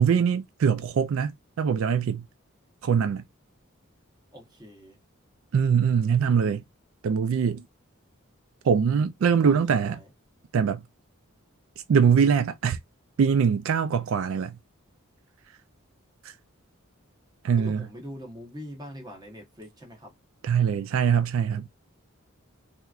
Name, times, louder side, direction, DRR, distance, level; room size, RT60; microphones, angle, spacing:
voice 1, 0.0-2.3 2.8-3.2 5.5-6.6 7.0-7.6 8.6-10.0 10.5-10.8 11.9-12.8 13.2-14.6 16.2-16.3 17.4-17.9 20.4-21.7, right 7 dB, 70° right, 0.3 m, -23 dB
voice 2, 4.3-5.0 9.4-10.1 17.6-20.1, equal, 20° right, 1.0 m, -43 dB
3.4 x 2.9 x 2.4 m
head